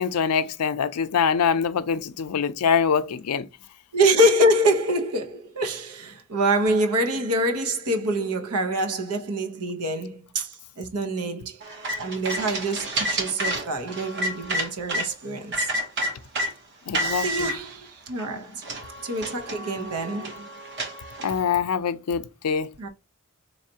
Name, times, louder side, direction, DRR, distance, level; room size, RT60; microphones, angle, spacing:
voice 1, 0.0-3.5 16.9-17.5 21.2-22.7, left 6 dB, 80° left, 0.5 m, -24 dB
voice 2, 3.9-11.6 12.0-15.7 17.2-18.6 19.0-20.5 22.8-22.9, right 1 dB, 85° right, 0.9 m, -25 dB
sound 1, 11.6-15.1 15.5-16.5 16.9-17.5 18.2-18.3 18.6-21.4, right 1 dB, 50° right, 1.0 m, -29 dB
4.1 x 3.2 x 2.8 m
head